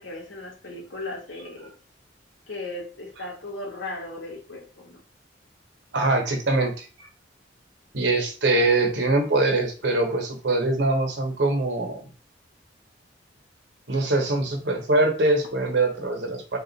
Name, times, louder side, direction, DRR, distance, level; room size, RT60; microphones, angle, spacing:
voice 1, 0.0-1.7 2.5-5.0, left 2 dB, 85° left, -1 dB, 1.6 m, -36 dB
voice 2, 5.9-6.9 7.9-12.0 13.9-16.6, right 2 dB, 65° right, 4 dB, 1.0 m, -23 dB
3.8 x 2.4 x 4.0 m, 0.37 s
head